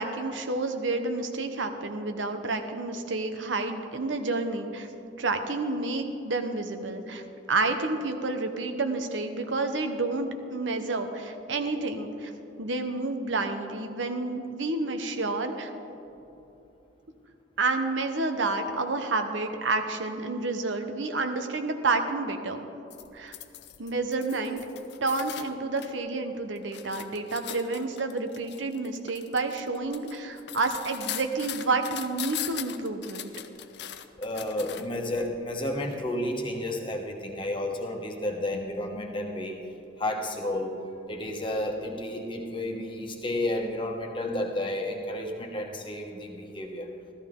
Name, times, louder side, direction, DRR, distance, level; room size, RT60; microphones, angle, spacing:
voice 1, 0.0-4.9 5.2-7.2 7.5-12.3 12.6-15.7 17.6-22.7 23.1-23.3 23.8-24.6 25.0-33.3, right 3 dB, 85° right, 6 dB, 0.9 m, -29 dB
sound 1, 22.9-25.9 26.3-35.0 35.8-36.0, left 11 dB, 65° left, 0.5 m, -40 dB
voice 2, 34.2-39.6 40.0-40.7 41.1-46.9, left 1 dB, 25° left, 2 dB, 1.2 m, -31 dB
14.0 x 14.0 x 3.8 m, 2.9 s
head